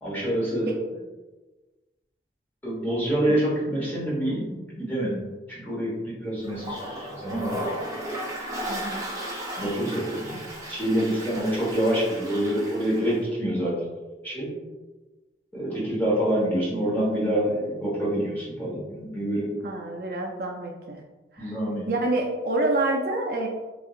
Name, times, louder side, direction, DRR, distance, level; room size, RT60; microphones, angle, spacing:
voice 1, 0.0-0.7 2.6-7.7 9.6-10.4 10.7-13.7 14.2-14.5 15.5-19.5 21.4-21.9, right 1 dB, 10° left, -7 dB, 1.2 m, -26 dB
Toilet flush, 6.4-13.2, equal, 20° right, 0.7 m, -35 dB
voice 2, 8.7-9.1 19.6-21.0 21.3-21.6 21.9-23.5, right 2 dB, 55° right, 0 dB, 0.4 m, -27 dB
4.0 x 2.6 x 2.4 m, 1.2 s
head